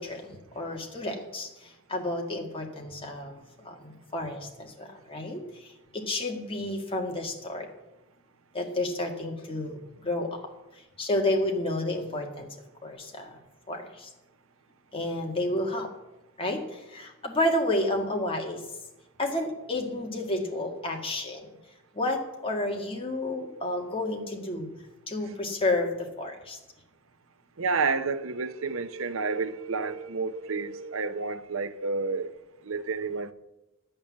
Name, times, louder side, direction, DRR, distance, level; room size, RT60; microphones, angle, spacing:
voice 1, 0.0-7.7 8.5-10.5 10.7-12.5 12.8-13.4 13.7-14.1 14.9-15.9 16.4-18.6 19.2-21.6 21.9-24.7 25.1-26.6, left 1 dB, 25° left, 1.9 m, -31 dB
voice 2, 27.6-32.3 32.7-33.3, right 4 dB, 70° right, 0.7 m, -30 dB
12.0 x 8.8 x 7.3 m
head